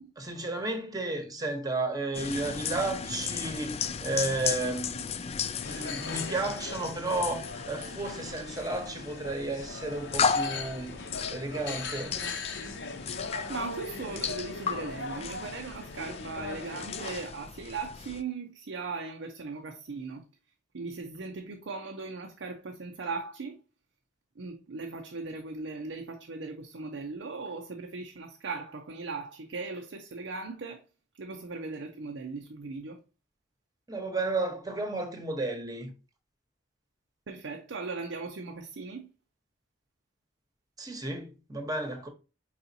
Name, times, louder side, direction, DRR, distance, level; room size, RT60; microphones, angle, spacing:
voice 1, 0.2-11.0 11.3-12.3 33.9-35.9 40.8-42.1, right 2 dB, 20° right, 0.9 m, -33 dB
sound 1, 2.1-18.2, left 6 dB, 35° left, 0.3 m, -35 dB
sound 2, 5.6-17.1, left 3 dB, 70° left, 0.8 m, -40 dB
voice 2, 13.5-20.2 20.7-23.6 24.4-30.8 31.2-33.0 37.3-39.1, right 4 dB, 90° right, 0.6 m, -38 dB
4.8 x 4.1 x 2.7 m
head